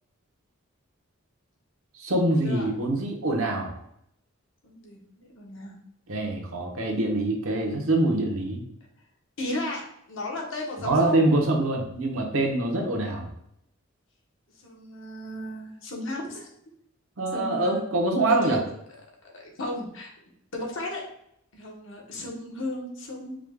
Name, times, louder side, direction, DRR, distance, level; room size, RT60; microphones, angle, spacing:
voice 1, 2.0-3.8 6.1-8.6 10.8-13.3 17.2-18.6, right 2 dB, 75° right, 1 dB, 0.9 m, -25 dB
voice 2, 4.6-5.7 9.4-11.2 14.6-16.5 17.3-17.8 18.3-18.6 19.2-20.1 20.5-21.0 21.5-23.4, left 2 dB, 65° left, -1 dB, 1.1 m, -34 dB
4.9 x 2.3 x 3.5 m, 0.74 s
head